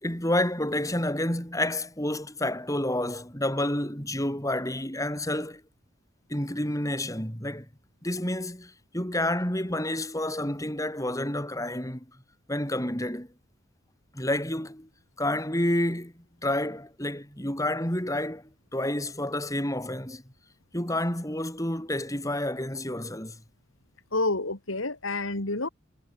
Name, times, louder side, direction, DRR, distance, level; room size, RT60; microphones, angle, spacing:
voice 1, 0.0-5.6 6.3-7.7 8.0-12.1 12.5-13.3 14.1-14.9 15.2-20.2 20.7-23.4, left 1 dB, 15° left, 6.2 m, -29 dB
voice 2, 24.1-25.7, left 2 dB, 75° left, 3.2 m, -28 dB
head